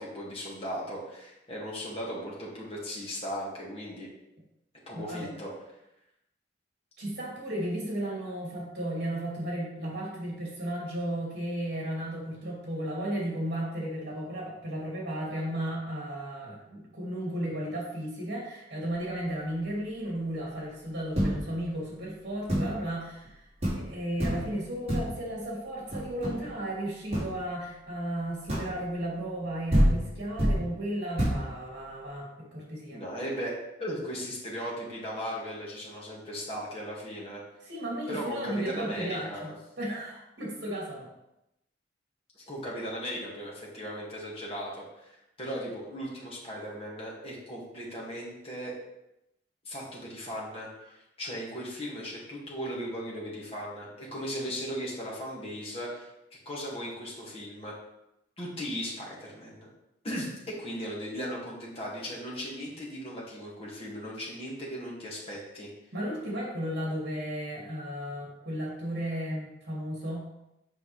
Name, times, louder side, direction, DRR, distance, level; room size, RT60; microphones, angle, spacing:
voice 1, 0.0-4.1 4.9-5.5 32.9-37.4 38.1-39.5 42.4-48.7 49.7-56.1 56.5-57.7 58.4-59.7 60.0-65.7, equal, 30° left, -5 dB, 2.1 m, -37 dB
voice 2, 4.9-5.3 7.0-23.5 23.7-33.0 37.6-41.1 65.9-70.2, right 1 dB, 60° right, -4 dB, 2.7 m, -34 dB
sound 1, 21.1-21.6 22.5-22.8 23.3-23.4 23.6-23.9 24.2-24.6 24.9-25.2 25.9-26.5 27.1-27.3 28.5-28.8 29.4-29.5 29.7-30.7 31.2-31.5, equal, 35° right, 2.7 m, -27 dB
7.9 x 5.2 x 3.3 m, 0.88 s
head